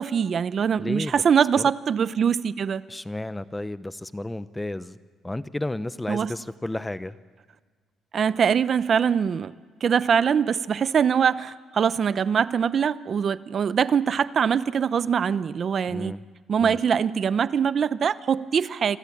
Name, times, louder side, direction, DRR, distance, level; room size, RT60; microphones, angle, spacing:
voice 1, 0.0-2.8 6.1-6.3 8.1-9.5 9.8-16.1 16.5-19.0, right 7 dB, 45° right, 15 dB, 0.7 m, -23 dB
voice 2, 0.8-1.2 1.5-1.6 2.9-5.0 5.2-7.2 15.9-16.2 16.6-16.8, left 1 dB, 10° left, 14 dB, 0.8 m, -32 dB
27.5 x 24.5 x 8.6 m, 1.5 s
cardioid pair, 120°, 0 cm